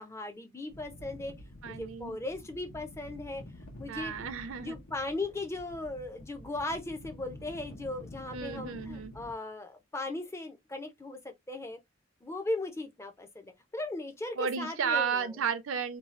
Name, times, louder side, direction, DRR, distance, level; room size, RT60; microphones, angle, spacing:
voice 1, 0.0-1.3 1.8-3.4 3.8-4.1 4.6-11.8 12.2-15.3, left 2 dB, 15° left, 0.4 m, -37 dB
sound 1, 0.7-9.3, left 1 dB, 85° left, 0.9 m, -48 dB
voice 2, 1.6-2.2 3.9-4.8 8.3-9.1 14.4-16.0, right 6 dB, 65° right, 0.5 m, -33 dB
2.7 x 2.3 x 3.0 m
head